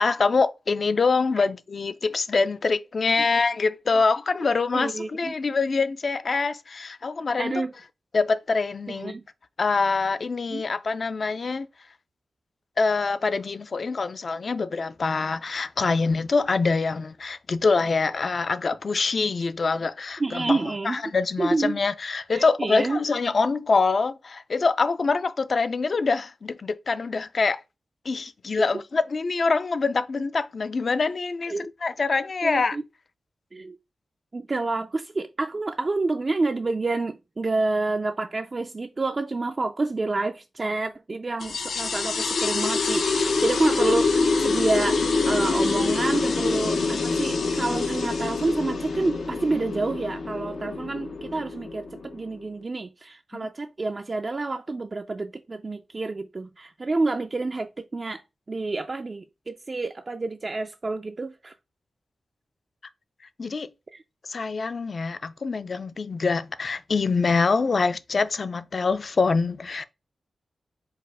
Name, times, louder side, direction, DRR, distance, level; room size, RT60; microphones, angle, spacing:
voice 1, 0.0-7.6 8.1-9.1 9.6-11.7 12.8-27.6 28.1-31.5 31.8-32.8 53.3-53.5 63.4-63.7 64.2-69.8, left 4 dB, 50° left, 0.4 m, -25 dB
voice 2, 4.7-5.3 7.4-7.7 8.9-9.2 10.5-10.6 20.2-21.0 21.4-21.8 22.3-23.0 31.5-31.7 32.4-32.8 33.5-33.8 34.3-58.2 58.5-61.5 63.9-64.0, right 3 dB, 35° right, 0.3 m, -28 dB
sound 1, 41.4-52.4, left 4 dB, 85° left, 0.7 m, -25 dB
4.8 x 2.4 x 4.6 m
wide cardioid pair, 130°, 0 cm